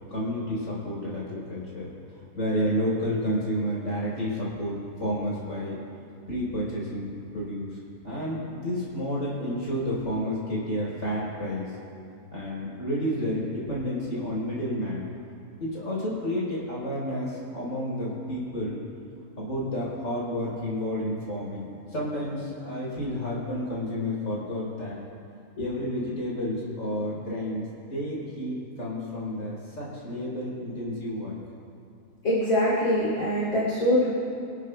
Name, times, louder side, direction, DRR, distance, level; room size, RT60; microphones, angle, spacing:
voice 1, 0.1-1.9 2.4-5.8 6.3-7.1 7.3-11.7 12.3-15.0 15.6-18.8 19.4-25.0 25.6-31.3, equal, 55° left, -6 dB, 4.3 m, -30 dB
voice 2, 32.2-34.1, equal, 70° left, -7 dB, 3.3 m, -23 dB
25.5 x 12.5 x 2.2 m, 2.5 s
omnidirectional pair, 1.6 m